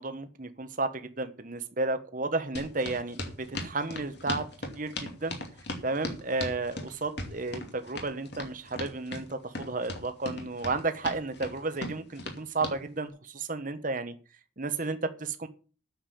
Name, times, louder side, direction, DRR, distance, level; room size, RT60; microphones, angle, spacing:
voice 1, 0.0-4.5 4.7-5.4 5.8-14.1 14.6-15.5, right 3 dB, 40° right, 10 dB, 1.2 m, -32 dB
sound 1, 2.6-12.8, left 2 dB, 55° left, 2.7 m, -38 dB
9.2 x 7.3 x 8.5 m, 0.38 s
head